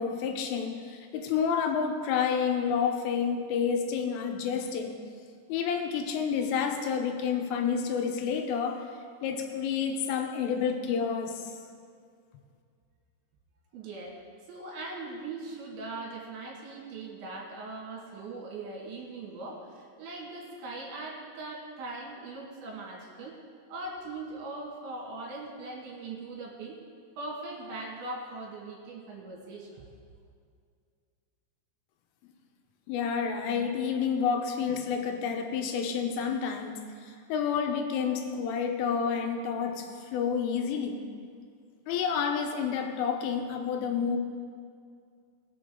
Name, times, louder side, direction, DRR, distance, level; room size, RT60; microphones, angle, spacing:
voice 1, 0.0-5.0 5.5-8.9 9.2-11.4 32.9-41.0 41.9-44.2, left 6 dB, 80° left, 4 dB, 3.4 m, -29 dB
voice 2, 13.7-14.2 14.5-23.4 23.7-26.8 27.2-29.9, right 3 dB, 70° right, -2 dB, 4.2 m, -40 dB
20.5 x 7.2 x 3.9 m, 2.2 s
omnidirectional pair, 5.7 m